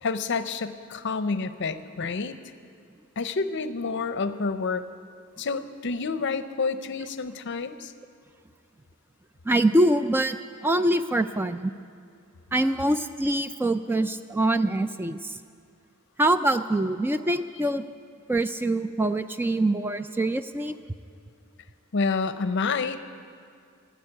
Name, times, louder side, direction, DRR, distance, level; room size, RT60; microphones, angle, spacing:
voice 1, 0.0-2.4 3.2-4.8 5.4-7.9 21.9-23.0, left 4 dB, 60° left, 11 dB, 0.6 m, -28 dB
voice 2, 9.4-11.7 12.5-15.4 16.2-17.8 18.3-20.8, right 1 dB, 10° right, 10 dB, 0.3 m, -24 dB
15.0 x 8.2 x 9.9 m, 2.4 s
head